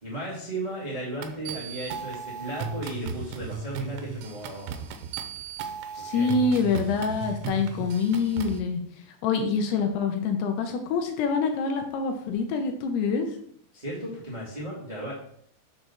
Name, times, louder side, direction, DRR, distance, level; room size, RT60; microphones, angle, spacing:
voice 1, 0.0-4.9 5.9-6.3 13.7-15.1, right 1 dB, 35° right, -6 dB, 0.6 m, -35 dB
sound 1, 1.2-8.6, right 6 dB, 80° right, 2.7 m, -36 dB
voice 2, 6.0-8.8 9.2-13.3, left 4 dB, 80° left, 5 dB, 2.6 m, -26 dB
7.2 x 4.0 x 5.9 m, 0.66 s
omnidirectional pair, 5.0 m